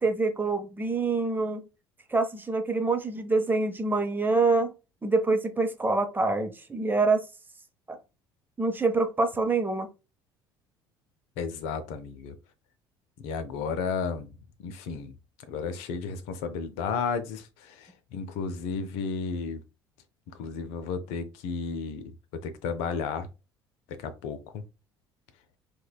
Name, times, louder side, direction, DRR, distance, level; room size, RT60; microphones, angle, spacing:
voice 1, 0.0-1.6 2.1-4.7 5.0-7.2 7.9-8.0 8.6-9.9, right 3 dB, 15° right, 0.7 m, -26 dB
voice 2, 11.4-12.3 13.2-14.3 14.6-15.1 15.5-17.7 18.1-19.6 20.4-22.0 22.4-23.3 24.0-24.6, left 5 dB, 60° left, 0.5 m, -33 dB
4.8 x 2.2 x 2.2 m
figure-of-eight pair, 60°, 13 cm